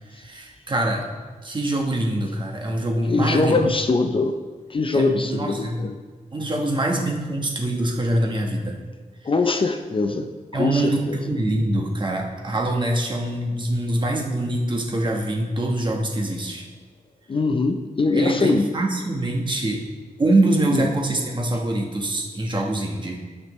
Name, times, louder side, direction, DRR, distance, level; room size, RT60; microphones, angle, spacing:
voice 1, 0.1-1.1 1.4-3.6 4.9-5.8 6.3-8.8 10.5-16.7 18.1-19.8 20.2-23.2, right 1 dB, 35° right, 0 dB, 1.1 m, -24 dB
voice 2, 3.1-4.4 4.7-6.0 9.2-11.2 17.3-18.7 20.7-20.9, left 3 dB, 40° left, 6 dB, 0.5 m, -22 dB
12.0 x 6.0 x 3.1 m, 1.4 s
wide cardioid pair, 130°, 14 cm